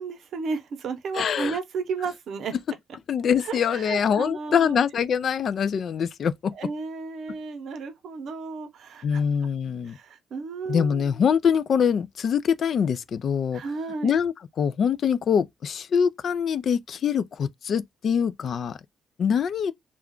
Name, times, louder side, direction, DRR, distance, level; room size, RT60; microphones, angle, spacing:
voice 1, 0.0-2.5 3.4-4.8 6.5-9.2 9.9-11.2 13.5-14.1, right 4 dB, 70° right, 0.7 m, -33 dB
voice 2, 1.1-1.6 3.1-6.5 9.0-10.0 10.7-13.6 14.0-18.8 19.2-19.7, left 7 dB, 55° left, 0.3 m, -24 dB
2.4 x 2.2 x 3.6 m
cardioid pair, 90°, 0 cm